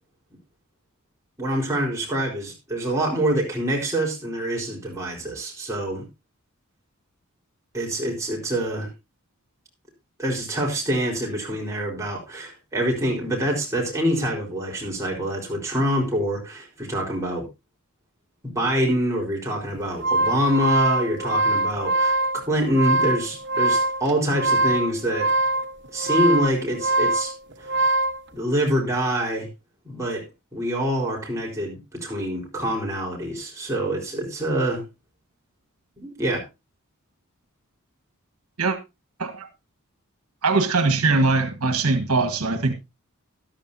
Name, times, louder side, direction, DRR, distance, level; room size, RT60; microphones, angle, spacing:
voice 1, 1.4-6.0 7.7-8.9 10.2-17.4 18.4-22.2 22.5-25.3 25.9-27.3 27.6-27.7 28.3-29.5 29.8-34.8 36.0-36.4, equal, 15° right, 4.2 m, -25 dB
sound 1, 19.7-28.2, right 2 dB, 55° right, 1.2 m, -23 dB
voice 2, 40.4-42.7, right 3 dB, 90° right, 1.5 m, -21 dB
13.5 x 11.5 x 2.7 m
head